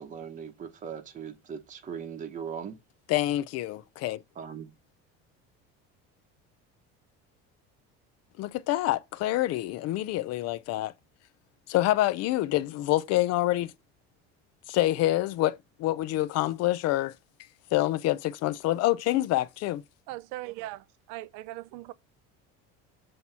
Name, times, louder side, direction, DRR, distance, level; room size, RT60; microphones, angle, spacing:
voice 1, 0.0-2.8 4.3-4.7, right 7 dB, 25° right, 0.9 m, -39 dB
voice 2, 3.1-4.2 8.4-10.9 11.7-13.7 14.7-17.1 17.7-19.8, left 15 dB, 55° left, 0.6 m, -27 dB
voice 3, 20.1-20.8 21.1-21.9, right 17 dB, 80° right, 0.5 m, -39 dB
7.8 x 2.9 x 5.5 m
cardioid pair, 145°, 30 cm